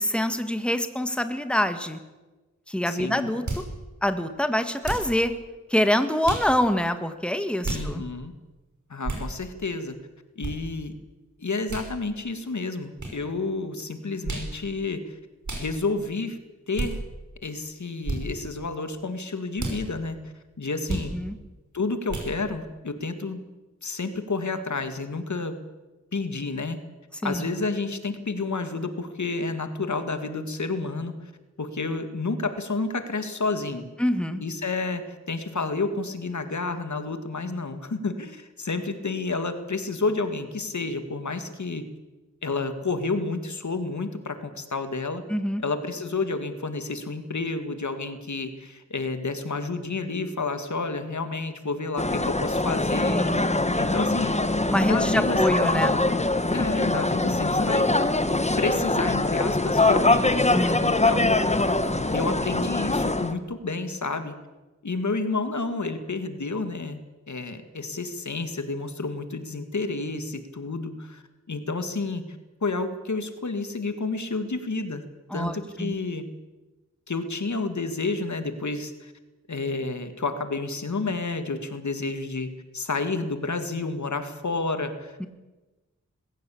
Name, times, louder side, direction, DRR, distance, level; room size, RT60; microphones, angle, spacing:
voice 1, 0.0-2.0 2.7-3.6 4.0-5.3 5.7-8.0 20.9-21.3 27.2-27.5 34.0-34.4 45.3-45.6 53.0-53.6 54.7-56.0 60.5-60.9 75.3-75.9 85.2-85.3, left 1 dB, 5° left, 9 dB, 1.7 m, -25 dB
voice 2, 2.9-3.3 7.7-8.3 8.9-10.0 10.4-10.9 11.4-15.2 15.5-16.4 16.7-17.0 17.4-21.2 21.7-23.4 23.8-25.6 26.1-26.8 27.2-31.3 31.6-33.9 34.4-41.9 42.4-45.2 45.6-53.2 53.8-54.5 54.8-55.4 56.5-57.9 58.6-60.4 60.8-61.4 62.1-64.4 64.8-67.0 67.3-71.2 71.5-72.3 72.6-75.0 75.3-76.3 77.1-79.1 79.5-85.3, left 3 dB, 70° left, 9 dB, 2.0 m, -30 dB
sound 1, 3.5-3.7 4.8-5.1 6.2-6.5 7.6-7.9 9.0-9.3 10.4-10.5 11.7-11.9 13.0-13.1 14.2-14.5 15.4-15.7 16.7-16.9 18.0-18.2 19.6-19.8 20.9-21.1 22.1-22.3, right 2 dB, 75° right, 5.5 m, -31 dB
sound 2, 52.0-63.3, left 2 dB, 20° left, 1.3 m, -23 dB
21.0 x 16.0 x 8.6 m, 1.1 s
wide cardioid pair, 75°, 30 cm